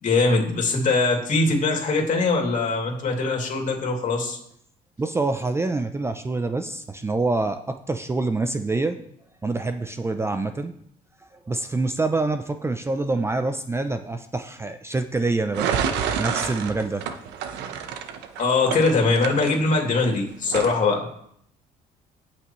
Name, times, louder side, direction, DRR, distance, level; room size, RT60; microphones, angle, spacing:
voice 1, 0.0-4.4 18.4-21.1, left 3 dB, 50° left, 1 dB, 2.6 m, -22 dB
voice 2, 5.0-9.0 9.4-10.8 11.5-15.8 16.1-17.1, right 3 dB, 15° right, 8 dB, 0.5 m, -26 dB
sound 1, 15.5-20.1 20.5-20.8, right 7 dB, 90° right, 0.9 m, -28 dB
17.5 x 6.0 x 3.1 m, 0.69 s
cardioid pair, 110°, 17 cm